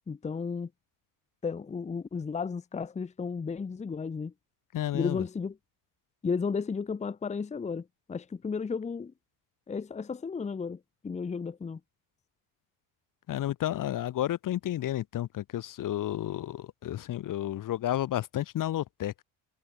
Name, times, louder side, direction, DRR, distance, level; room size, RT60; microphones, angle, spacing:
voice 1, 0.1-0.7 1.4-4.3 4.9-5.6 6.2-9.1 9.7-11.8, left 5 dB, 15° left, 0.9 m, -33 dB
voice 2, 4.7-5.2 13.3-19.2, left 12 dB, 40° left, 1.1 m, -31 dB
cardioid pair, 155°, 47 cm